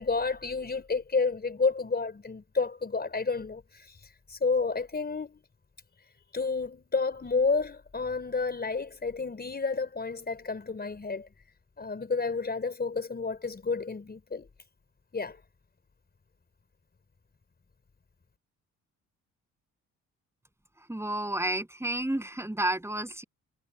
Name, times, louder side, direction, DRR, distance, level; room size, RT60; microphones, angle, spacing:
voice 1, 0.0-4.0 4.3-5.4 6.3-11.3 11.8-14.5 15.1-15.4, left 4 dB, 30° left, 4.9 m, -30 dB
voice 2, 20.9-23.2, right 1 dB, 10° right, 7.9 m, -31 dB
supercardioid pair, 65°, 31 cm